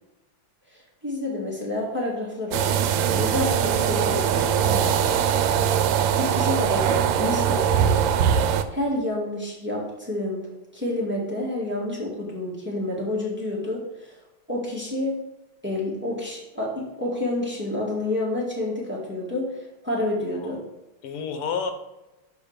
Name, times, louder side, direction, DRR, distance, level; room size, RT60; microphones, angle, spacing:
voice 1, 0.7-5.2 5.5-5.6 6.2-10.5 10.7-14.2 14.5-15.1 15.6-20.6, left 1 dB, 5° right, -4 dB, 1.7 m, -29 dB
sound 1, 2.5-8.6, right 8 dB, 85° right, 1.5 m, -21 dB
voice 2, 20.0-20.6 21.0-21.7, left 6 dB, 90° left, 7 dB, 1.8 m, -32 dB
6.7 x 5.1 x 5.1 m, 0.99 s
omnidirectional pair, 2.4 m